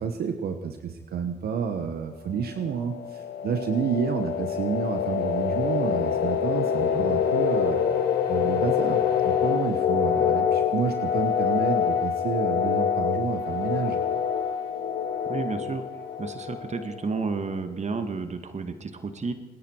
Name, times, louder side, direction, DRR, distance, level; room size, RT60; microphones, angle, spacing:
voice 1, 0.0-7.8 8.3-14.0, right 6 dB, 75° right, 7 dB, 1.3 m, -30 dB
sound 1, 2.5-17.1, left 8 dB, 85° left, 1.8 m, -26 dB
voice 2, 15.3-15.8 16.2-19.3, right 4 dB, 45° right, 9 dB, 1.9 m, -31 dB
27.0 x 10.5 x 4.7 m, 1.2 s
supercardioid pair, 60°, 16 cm